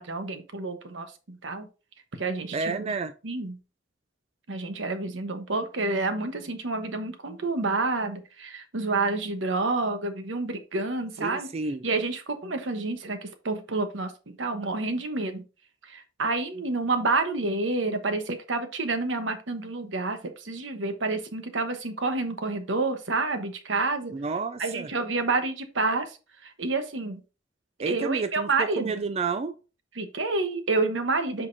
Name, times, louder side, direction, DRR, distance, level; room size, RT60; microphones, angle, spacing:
voice 1, 0.0-1.7 2.2-2.9 3.2-3.6 4.5-11.5 11.8-15.4 15.9-24.1 24.6-26.2 26.4-27.2 27.9-29.0 30.0-31.5, right 3 dB, 80° right, 1.1 m, -29 dB
voice 2, 2.5-3.1 11.2-11.9 24.1-24.9 27.8-29.5, right 4 dB, 35° right, 0.4 m, -30 dB
8.3 x 5.1 x 2.6 m
head